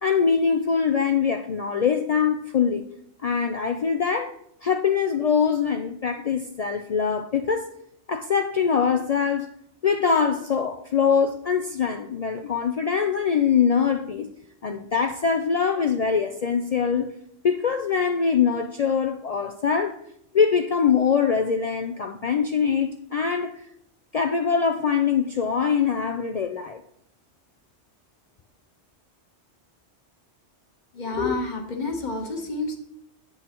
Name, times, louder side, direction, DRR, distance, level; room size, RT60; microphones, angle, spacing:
voice 1, 0.0-2.9 3.2-4.3 4.6-7.7 8.1-9.5 9.8-14.3 14.6-17.1 17.4-20.0 20.3-23.6 24.1-26.8, left 6 dB, 75° left, 0.3 m, -23 dB
voice 2, 30.9-32.8, left 3 dB, 40° left, 1.2 m, -28 dB
8.2 x 8.0 x 2.9 m
omnidirectional pair, 1.2 m